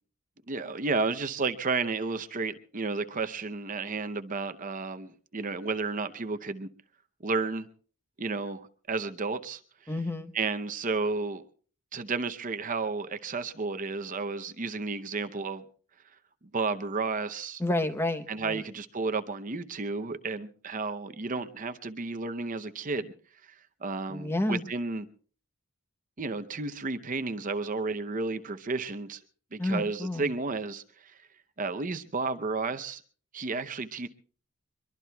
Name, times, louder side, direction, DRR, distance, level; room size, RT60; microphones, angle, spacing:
voice 1, 0.5-6.7 7.2-7.7 8.2-9.6 10.3-11.4 11.9-15.6 16.5-17.6 18.3-23.1 23.8-25.1 26.2-29.2 29.5-31.1 31.6-33.0 33.3-34.1, right 4 dB, 35° right, 0.7 m, -32 dB
voice 2, 9.9-10.3 17.6-18.6 24.1-24.6 29.6-30.3, left 1 dB, 10° left, 0.9 m, -30 dB
24.0 x 22.5 x 2.3 m
head